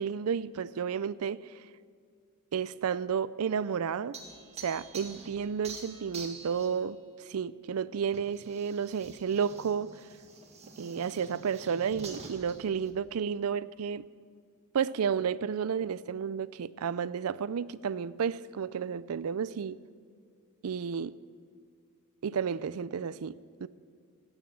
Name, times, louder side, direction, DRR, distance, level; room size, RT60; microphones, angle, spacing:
voice 1, 0.0-1.4 2.5-4.2 4.6-7.0 7.3-10.0 10.8-14.0 14.7-19.8 20.6-21.2 22.2-23.7, right 7 dB, 85° right, 17 dB, 0.4 m, -32 dB
sound 1, 4.1-6.9 8.1-12.9, right 4 dB, 30° right, 1.8 m, -47 dB
17.0 x 8.9 x 7.6 m, 2.2 s
head